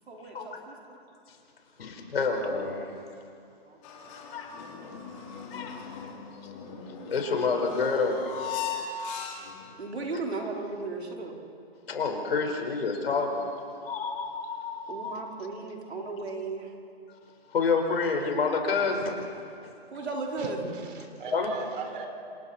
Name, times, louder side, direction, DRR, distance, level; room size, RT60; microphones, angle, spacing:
voice 1, 0.1-0.8 3.6-3.8 9.8-11.3 14.9-16.7 19.9-20.6, right 3 dB, 80° right, 0 dB, 4.4 m, -35 dB
voice 2, 1.8-2.8 4.3-4.5 5.5-5.8 7.1-8.3 11.9-13.5 13.8-15.2 17.5-19.2 21.3-21.5, left 4 dB, 65° left, 2 dB, 4.7 m, -28 dB
sound 1, 3.8-9.7, left 6 dB, 30° left, 4.0 m, -38 dB
voice 3, 20.4-22.1, right 4 dB, 55° right, 4 dB, 4.0 m, -39 dB
28.5 x 27.0 x 4.3 m, 2.4 s
hypercardioid pair, 145°, 32 cm